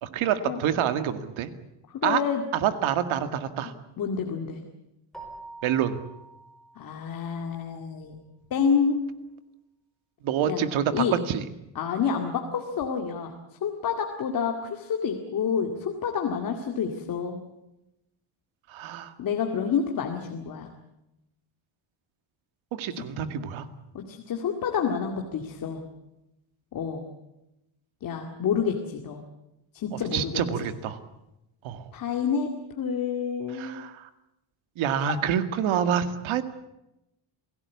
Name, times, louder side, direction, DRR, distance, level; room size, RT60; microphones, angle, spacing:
voice 1, 0.0-1.5 2.0-2.2 2.5-3.7 5.6-6.0 10.2-11.4 18.7-19.1 22.7-23.7 30.1-31.0 31.6-31.9 33.5-34.1 34.8-36.4, right 9 dB, 75° right, 10 dB, 2.1 m, -27 dB
voice 2, 1.9-2.4 4.0-4.6 6.8-8.2 8.5-9.0 10.4-10.6 10.9-11.1 11.8-13.3 13.6-17.4 19.2-20.7 23.9-25.8 26.7-27.0 28.0-29.2 29.7-30.7 31.9-32.5 32.8-33.8, left 6 dB, 45° left, 3 dB, 2.3 m, -28 dB
Keyboard (musical), 5.1-7.6, right 3 dB, ahead, 5.0 m, -46 dB
27.5 x 17.5 x 8.4 m, 0.91 s
cardioid pair, 180°, 48 cm